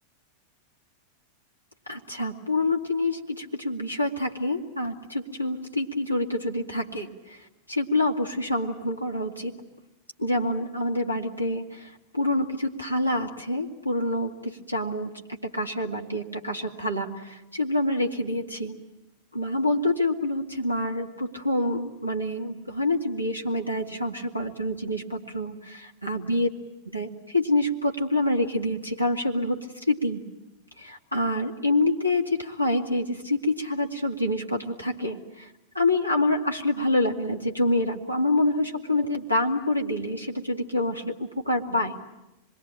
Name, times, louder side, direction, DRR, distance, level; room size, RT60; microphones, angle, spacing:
voice 1, 1.9-9.6 10.2-18.7 19.3-26.5 26.8-30.2 30.8-42.1, left 1 dB, 90° right, 2 dB, 2.2 m, -27 dB
26.0 x 22.0 x 9.0 m, 0.98 s
figure-of-eight pair, 90°, 0 cm